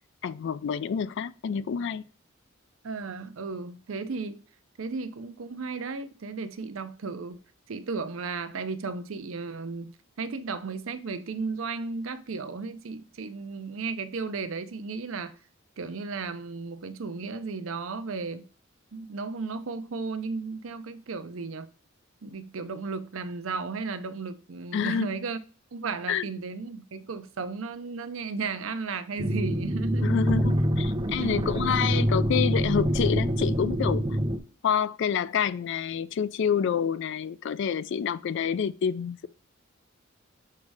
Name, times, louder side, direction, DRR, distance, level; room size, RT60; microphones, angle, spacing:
voice 1, 0.2-2.1 24.7-25.1 26.1-26.3 30.0-34.2 34.6-39.3, left 7 dB, 60° left, 0.3 m, -28 dB
voice 2, 2.8-4.4 4.8-7.4 7.7-15.3 15.8-18.4 18.9-21.7 22.2-25.4 25.7-30.1 31.2-31.3, right 4 dB, 75° right, 0.6 m, -34 dB
sound 1, 29.2-34.4, equal, 25° right, 0.8 m, -26 dB
6.6 x 3.2 x 4.7 m
head